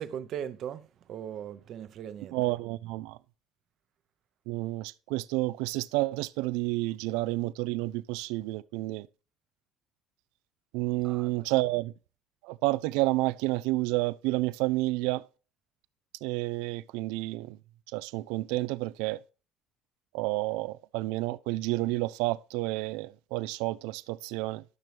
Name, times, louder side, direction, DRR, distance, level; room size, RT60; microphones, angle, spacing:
voice 1, 0.0-2.4 11.0-11.3, right 9 dB, 60° right, 0.7 m, -39 dB
voice 2, 2.3-3.2 4.5-9.1 10.7-11.9 12.4-15.2 16.2-17.6 17.9-19.2 20.1-24.6, right 19 dB, 90° right, 0.3 m, -30 dB
12.0 x 6.1 x 3.3 m
cardioid pair, 100°, 0 cm